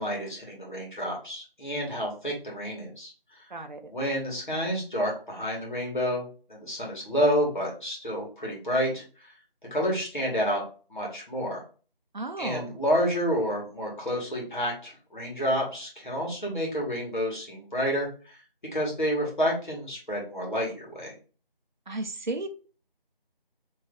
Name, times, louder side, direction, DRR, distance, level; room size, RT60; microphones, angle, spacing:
voice 1, 0.0-3.1 3.9-9.3 9.7-10.6 10.9-11.6 12.4-18.4 18.7-21.1, equal, 55° left, -2 dB, 1.6 m, -29 dB
voice 2, 3.5-3.9 12.1-12.8 21.9-22.5, right 2 dB, 55° right, 6 dB, 0.5 m, -34 dB
3.1 x 2.6 x 3.7 m, 0.37 s
figure-of-eight pair, 180°, 29 cm